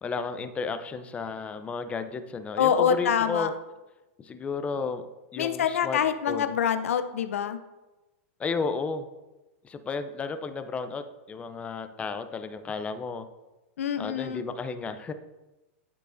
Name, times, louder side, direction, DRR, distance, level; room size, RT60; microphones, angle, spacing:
voice 1, 0.0-3.5 4.2-5.1 5.3-6.0 6.3-6.5 8.4-9.1 9.6-13.2 14.0-15.1, left 5 dB, 15° left, 9 dB, 0.5 m, -33 dB
voice 2, 2.6-3.5 5.4-7.6 13.8-14.4, left 8 dB, 85° left, 10 dB, 0.5 m, -25 dB
11.5 x 4.6 x 2.6 m, 1.1 s
hypercardioid pair, 130°, 7 cm